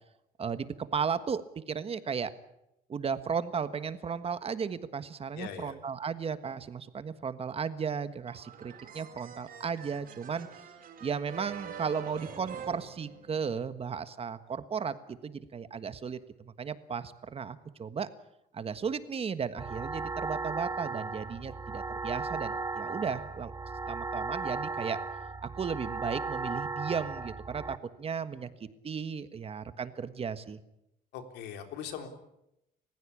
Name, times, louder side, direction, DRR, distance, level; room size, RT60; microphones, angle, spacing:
voice 1, 0.4-2.3 2.9-10.5 11.0-18.1 18.5-23.5 23.9-25.0 25.4-30.6, right 6 dB, 35° right, 12 dB, 1.5 m, -35 dB
voice 2, 5.3-5.7 31.1-32.1, left 8 dB, 90° left, 6 dB, 3.7 m, -40 dB
sound 1, 8.3-13.7, right 7 dB, 60° right, 5.0 m, -45 dB
sound 2, 19.6-27.8, right 3 dB, 20° right, 1.1 m, -36 dB
30.0 x 15.5 x 8.6 m, 0.85 s
cardioid pair, 110°, 17 cm